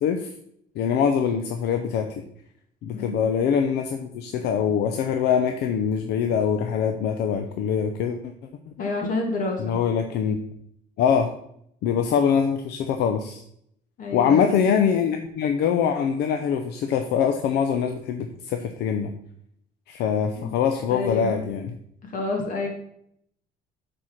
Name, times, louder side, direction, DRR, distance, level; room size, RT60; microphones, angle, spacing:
voice 1, 0.8-2.2 2.8-8.3 9.6-10.4 11.0-11.3 11.8-13.4 14.1-19.1 19.9-21.8, left 7 dB, 80° left, 6 dB, 0.7 m, -23 dB
voice 2, 8.8-9.8 14.0-14.5 20.3-20.5 20.9-21.4 22.0-22.7, left 3 dB, 50° left, 1 dB, 2.6 m, -29 dB
7.4 x 4.5 x 6.4 m, 0.70 s
cardioid pair, 110°, 17 cm